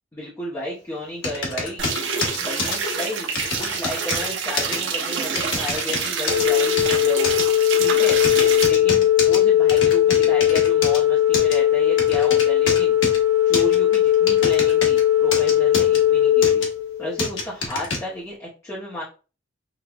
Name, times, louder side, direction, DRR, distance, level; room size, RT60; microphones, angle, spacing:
voice 1, 0.1-1.9 2.4-3.3 3.6-7.3 7.8-8.2 8.6-13.0 13.4-16.7 17.0-19.0, left 1 dB, 15° left, -6 dB, 0.8 m, -32 dB
sound 1, 1.2-2.8 3.4-4.3 4.6-4.8 5.4-6.4 6.8-7.4 8.1-9.4 9.7-11.0 11.3-11.6 12.0-13.2 13.5-15.0 15.3-16.0 16.4-16.7 17.2-18.0, left 3 dB, 75° left, 1.1 m, -27 dB
sound 2, 1.8-8.7, right 5 dB, 70° right, 0.7 m, -27 dB
Organ, 6.3-17.4, left 11 dB, 30° right, 1.2 m, -18 dB
5.9 x 2.3 x 2.3 m, 0.35 s
head